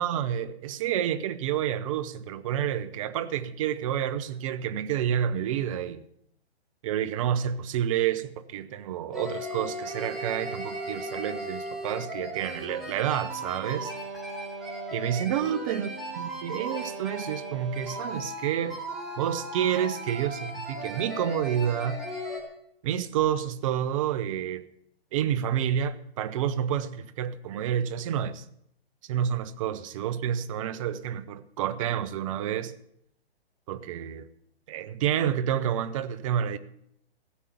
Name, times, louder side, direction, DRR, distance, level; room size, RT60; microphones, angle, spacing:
voice 1, 0.0-6.1 6.8-13.9 14.9-15.9 16.2-18.8 19.2-22.0 22.8-24.6 25.1-28.4 29.0-32.8 33.7-34.3 34.7-36.6, right 10 dB, 30° right, 0.7 m, -29 dB
sound 1, 9.1-22.4, right 1 dB, ahead, 3.9 m, -36 dB
15.5 x 7.2 x 6.9 m
figure-of-eight pair, 130°, 32 cm